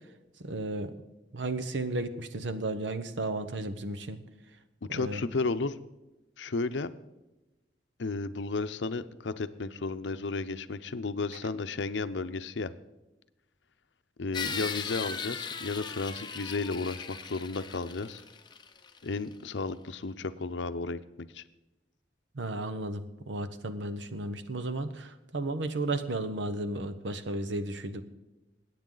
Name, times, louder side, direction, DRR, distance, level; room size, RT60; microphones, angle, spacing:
voice 1, 0.4-0.9 1.3-4.2 4.9-5.2 22.3-28.0, right 2 dB, 80° right, 9 dB, 1.0 m, -34 dB
voice 2, 4.8-5.8 6.4-6.9 8.0-12.7 14.2-18.2 19.0-21.4, left 3 dB, 75° left, 12 dB, 0.6 m, -33 dB
sound 1, 14.3-19.1, left 5 dB, 25° left, 0.8 m, -38 dB
21.5 x 9.3 x 3.9 m, 1.0 s
head